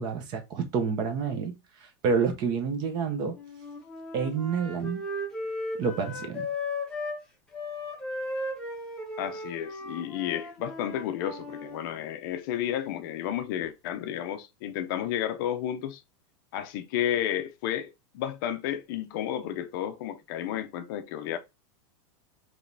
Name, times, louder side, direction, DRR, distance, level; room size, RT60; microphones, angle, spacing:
voice 1, 0.0-1.5 2.0-3.3 4.1-5.0 5.8-6.4, right 5 dB, 30° right, 0.6 m, -28 dB
Wind instrument woodwind instrument, 3.3-7.2 7.5-11.8, left 2 dB, 5° left, 0.9 m, -36 dB
voice 2, 9.2-16.0 16.5-21.4, left 11 dB, 45° left, 0.5 m, -32 dB
4.9 x 3.0 x 2.6 m
supercardioid pair, 170°, 15 cm